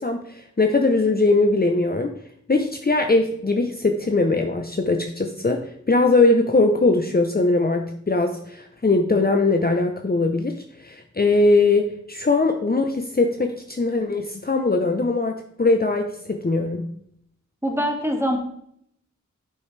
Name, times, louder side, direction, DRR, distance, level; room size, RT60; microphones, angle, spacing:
voice 1, 0.0-2.1 2.5-5.6 5.9-10.5 10.8-16.8, left 3 dB, 30° left, 4 dB, 0.8 m, -21 dB
voice 2, 17.6-18.4, equal, 10° right, 2 dB, 2.1 m, -23 dB
11.5 x 5.5 x 3.3 m, 0.69 s
wide cardioid pair, 55°, 30 cm